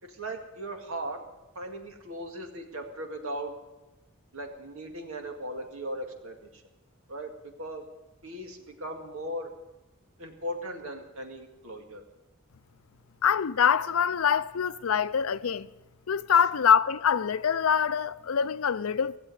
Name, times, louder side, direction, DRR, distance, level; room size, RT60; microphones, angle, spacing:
voice 1, 0.0-1.2 1.6-3.5 4.3-6.6 7.1-7.3 7.6-7.8 8.2-9.5 10.2-12.0, right 1 dB, 90° right, 2.1 m, -38 dB
voice 2, 13.2-15.7 16.1-19.2, left 7 dB, 90° left, 0.5 m, -24 dB
16.5 x 7.5 x 9.3 m
head